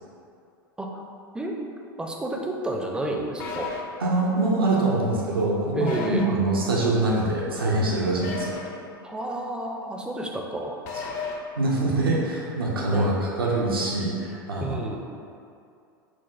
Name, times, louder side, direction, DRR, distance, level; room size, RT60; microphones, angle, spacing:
voice 1, 2.0-3.7 5.7-6.3 9.0-10.8 12.9-13.1 14.6-15.0, right 1 dB, 5° right, 0 dB, 0.4 m, -30 dB
sound 1, 3.4-3.8 5.9-6.2 8.2-8.7 10.8-11.3, left 5 dB, 55° left, 0.5 m, -33 dB
voice 2, 4.0-8.6 11.6-14.8, right 2 dB, 85° right, -4 dB, 0.6 m, -24 dB
5.9 x 2.1 x 2.4 m, 2.5 s
hypercardioid pair, 90°, 12 cm